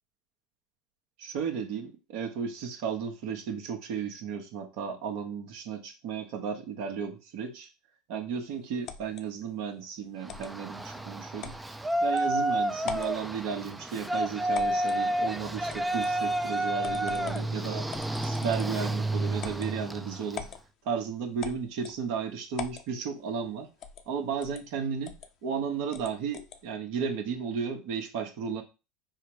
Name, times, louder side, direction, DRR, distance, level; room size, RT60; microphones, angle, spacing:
voice 1, 1.2-7.7 8.1-11.5 12.0-17.9 18.2-20.4 20.8-23.7 24.1-25.2 25.4-28.6, right 6 dB, 60° right, 4 dB, 1.0 m, -34 dB
sound 1, 8.9-9.2 10.3-10.5 11.4-11.6 12.2-12.3 12.8-13.2 14.5-15.0 15.7-16.1 16.8-17.5 17.9-18.8 19.4-19.7 20.3-20.6 21.4-22.0 22.6-22.9 23.8-24.1 24.4-24.6 25.0-25.3 25.9-26.6, left 8 dB, 45° left, 0.6 m, -41 dB
Yell, 10.2-20.5, right 1 dB, 10° right, 0.4 m, -30 dB
4.7 x 2.0 x 4.7 m, 0.29 s
hypercardioid pair, 85°, 0 cm